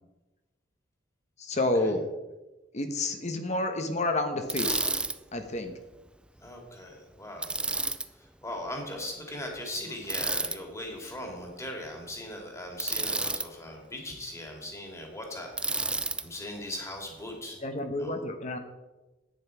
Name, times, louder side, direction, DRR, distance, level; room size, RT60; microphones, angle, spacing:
voice 1, 1.4-2.0 2.7-4.8 5.3-5.7 17.6-18.6, left 2 dB, 40° left, 6 dB, 1.1 m, -29 dB
Bicycle, 4.5-5.2 7.4-8.1 10.1-10.6 12.8-13.5 15.6-16.2, right 3 dB, 5° right, 0.3 m, -30 dB
voice 2, 6.4-7.6 8.1-17.6 17.9-18.2, left 1 dB, 15° left, 1 dB, 2.2 m, -39 dB
10.5 x 8.9 x 4.6 m, 1.1 s
head